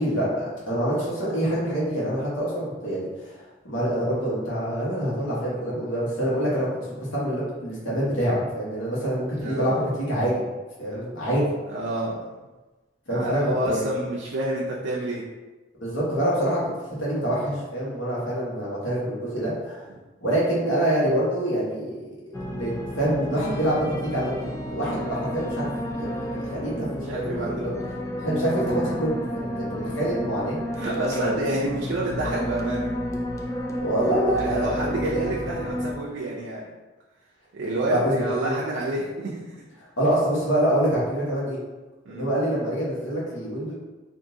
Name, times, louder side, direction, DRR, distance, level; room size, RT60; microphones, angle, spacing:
voice 1, 0.0-10.4 10.8-11.5 13.1-13.9 15.8-16.6 16.9-19.9 20.2-22.0 22.5-26.9 27.1-27.7 28.2-30.6 30.9-31.3 33.8-35.0 37.9-38.5 40.0-41.6 42.1-43.7, right 1 dB, 90° left, -7 dB, 1.3 m, -26 dB
voice 2, 9.4-9.8 11.7-12.2 13.1-15.2 27.1-27.7 30.7-32.9 34.4-36.6 37.5-39.4 42.1-42.3, right 1 dB, 75° right, -5 dB, 0.5 m, -28 dB
sound 1, 22.3-35.9, equal, 15° left, 0.4 m, -31 dB
3.6 x 2.6 x 2.7 m, 1.2 s
head